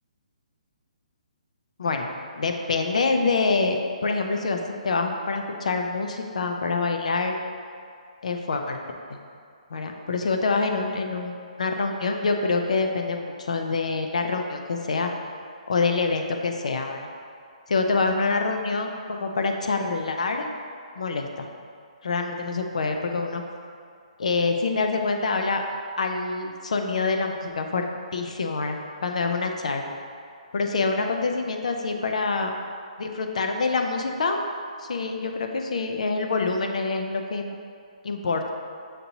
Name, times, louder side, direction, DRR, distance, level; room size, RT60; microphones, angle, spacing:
voice 1, 2.4-4.6 4.8-7.4 8.2-8.8 9.1-9.2 9.7-15.1 15.7-17.1 17.7-20.5 21.0-21.5 22.0-23.4 24.2-25.6 26.0-27.9 28.1-30.0 30.5-32.5 33.0-34.4 34.8-37.5 38.0-38.5, left 4 dB, 60° left, 4 dB, 0.4 m, -26 dB
6.7 x 2.7 x 2.8 m, 2.3 s
hypercardioid pair, 180°, 4 cm